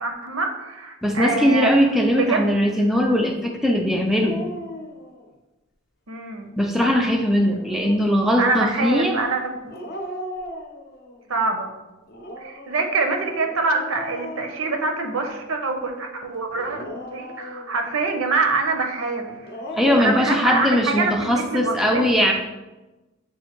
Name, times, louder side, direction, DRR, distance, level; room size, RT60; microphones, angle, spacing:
voice 1, 0.0-1.7 2.1-2.5 6.1-6.5 8.4-9.4 11.3-11.7 12.4-19.3 20.0-22.3, right 3 dB, 80° right, 4 dB, 0.6 m, -25 dB
voice 2, 1.0-4.4 6.6-9.2 19.7-22.3, equal, ahead, 1 dB, 0.3 m, -20 dB
Dog, 1.2-1.8 3.9-5.3 7.4-8.2 9.7-11.2 12.1-15.3 16.5-17.9 19.3-20.6, left 1 dB, 50° left, 0.6 m, -36 dB
7.0 x 2.5 x 2.9 m, 1.1 s
head